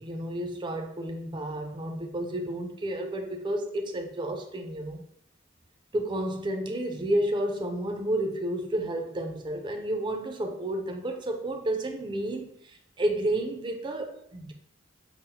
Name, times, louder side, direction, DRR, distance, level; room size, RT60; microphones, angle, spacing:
voice 1, 0.0-5.0 5.9-14.5, right 1 dB, 25° right, 0.5 m, -31 dB
5.6 x 2.0 x 2.7 m
head